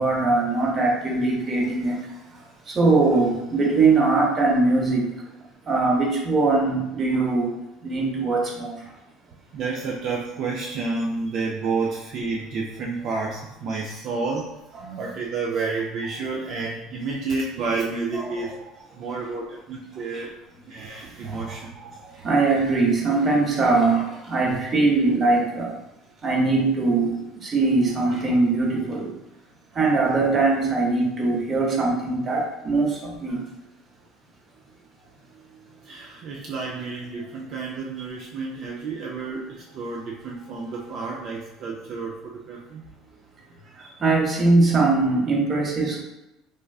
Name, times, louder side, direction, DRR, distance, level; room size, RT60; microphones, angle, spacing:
voice 1, 0.0-2.0 2.7-5.1 5.7-7.5 7.8-8.9 18.1-18.5 20.1-20.2 21.2-21.6 21.9-25.7 26.2-29.1 29.7-33.4 43.8-46.0, right 3 dB, 35° right, -1 dB, 0.8 m, -21 dB
voice 2, 9.5-18.5 18.9-20.3 20.7-21.8 35.8-42.9, right 4 dB, 55° right, -2 dB, 0.3 m, -30 dB
3.3 x 2.3 x 2.3 m, 0.93 s
supercardioid pair, 115°, 0 cm